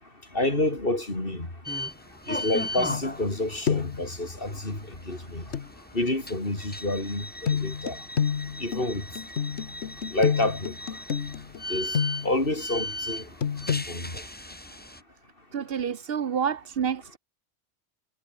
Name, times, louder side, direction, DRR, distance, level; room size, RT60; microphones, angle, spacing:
voice 1, 0.3-1.5 2.3-5.4 5.9-8.0 8.6-9.0 10.1-10.7 11.7-12.0 12.2-13.3 13.9-14.2, left 2 dB, 55° left, 5.1 m, -28 dB
sound 1, 1.6-15.0, left 1 dB, 10° left, 1.6 m, -38 dB
sound 2, 2.9-3.4 3.7-4.1 5.5-5.7 7.5-12.5 13.4-13.8, left 7 dB, 90° left, 1.4 m, -29 dB
voice 2, 15.5-17.2, right 7 dB, 65° right, 1.0 m, -28 dB
omnidirectional pair, 1.1 m